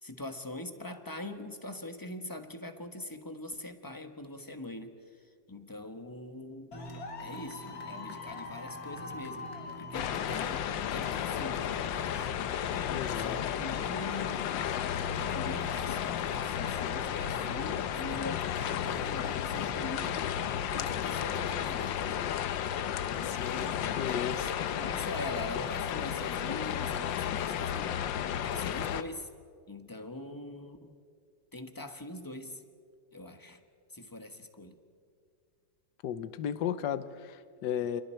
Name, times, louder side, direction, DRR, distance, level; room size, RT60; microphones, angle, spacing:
voice 1, 0.0-5.0 5.5-6.8 7.2-9.5 9.8-12.3 13.1-14.5 15.1-20.3 20.7-22.2 23.1-28.0 28.4-29.3 29.7-30.9 31.5-32.6 33.1-33.6 33.9-34.8, left 1 dB, 15° left, 7 dB, 1.0 m, -43 dB
sound 1, 6.7-21.0, left 3 dB, 50° left, 2.4 m, -43 dB
sound 2, 9.9-29.0, left 9 dB, 85° left, 1.5 m, -33 dB
voice 2, 12.9-13.4 23.2-24.5 36.0-38.0, left 9 dB, 70° left, 13 dB, 1.4 m, -35 dB
29.0 x 28.0 x 4.5 m, 2.1 s
omnidirectional pair, 2.0 m